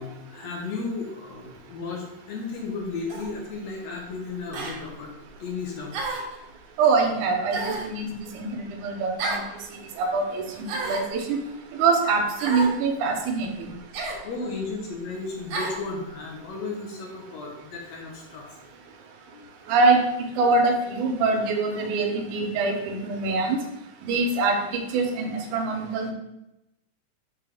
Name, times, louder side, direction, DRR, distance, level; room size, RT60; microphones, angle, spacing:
voice 1, 0.0-5.1 5.4-6.0 14.2-18.4 19.3-19.4, left 4 dB, 70° left, -1 dB, 2.1 m, -34 dB
sound 1, 3.1-3.3 4.5-4.8 5.9-6.4 7.5-7.9 9.2-9.5 10.6-11.1 12.4-12.8 13.9-14.2 15.5-15.8, right 2 dB, 65° right, 2.0 m, -30 dB
voice 2, 6.8-8.1 8.3-9.4 10.0-11.4 11.8-13.7 19.7-20.0 20.4-23.6 24.0-24.6 24.9-26.1, right 4 dB, 90° right, 3 dB, 2.3 m, -24 dB
5.3 x 5.1 x 3.4 m, 0.89 s
omnidirectional pair, 3.5 m